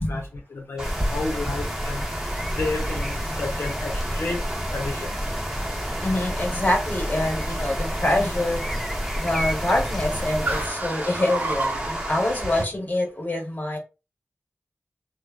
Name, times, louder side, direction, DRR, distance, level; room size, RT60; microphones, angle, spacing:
voice 1, 0.5-2.0 2.6-4.4 4.7-5.1, left 3 dB, 80° left, 0.6 m, -31 dB
sound 1, 0.8-10.7, equal, 5° left, 0.3 m, -31 dB
Water, 0.8-12.6, right 1 dB, 15° right, 1.0 m, -33 dB
Car, 3.5-12.3, right 2 dB, 45° right, 0.5 m, -36 dB
voice 2, 6.0-8.6 9.1-13.8, left 1 dB, 40° left, 1.1 m, -25 dB
3.2 x 2.1 x 2.4 m
wide cardioid pair, 60°, 4 cm